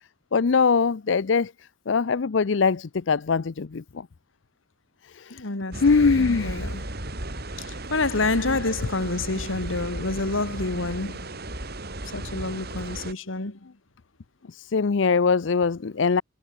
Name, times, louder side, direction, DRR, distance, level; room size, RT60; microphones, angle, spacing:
voice 1, 0.3-1.5 1.9-4.1 5.1-5.4 5.8-6.7 14.5-16.2, left 5 dB, 65° left, 0.5 m, -22 dB
voice 2, 5.3-5.9 6.4-6.8 7.6-11.3 12.1-13.6, left 3 dB, 80° left, 2.1 m, -28 dB
sound 1, 5.7-13.1, right 1 dB, 55° right, 5.3 m, -35 dB
head